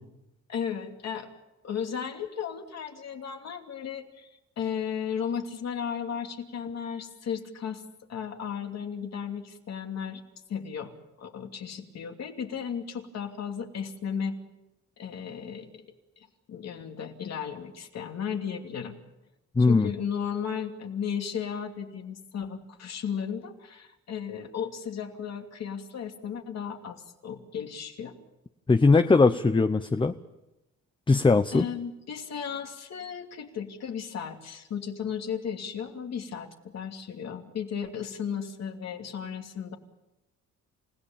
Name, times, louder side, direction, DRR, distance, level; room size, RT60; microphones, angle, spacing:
voice 1, 0.5-1.3 1.6-4.3 4.6-7.8 8.1-10.2 10.5-10.9 11.2-14.4 15.0-15.8 16.2-19.0 19.6-28.1 31.5-39.8, left 7 dB, 60° left, 4 dB, 2.8 m, -35 dB
voice 2, 19.6-19.9 28.7-30.1 31.1-31.7, left 3 dB, 15° left, 10 dB, 0.8 m, -20 dB
29.5 x 16.5 x 7.2 m, 0.95 s
cardioid pair, 90°, 30 cm